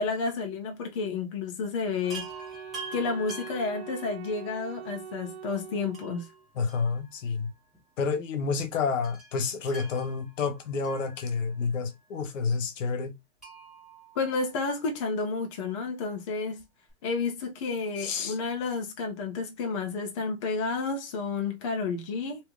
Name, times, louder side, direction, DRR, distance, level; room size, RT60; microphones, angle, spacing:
voice 1, 0.0-2.3 2.9-6.3 14.2-16.6 17.0-22.5, left 4 dB, 25° left, 0.6 m, -31 dB
Wind instrument woodwind instrument, 2.0-6.5, right 7 dB, 55° right, 0.5 m, -43 dB
Chime, 2.1-4.5 5.9-7.5 7.7-7.8 9.0-11.7 13.4-15.0 16.6-16.7 16.9-17.0, right 3 dB, ahead, 1.4 m, -46 dB
voice 2, 6.6-7.5 8.0-13.1 18.0-18.3, left 5 dB, 65° left, 1.1 m, -29 dB
2.9 x 2.7 x 3.6 m
hypercardioid pair, 165°, 40 cm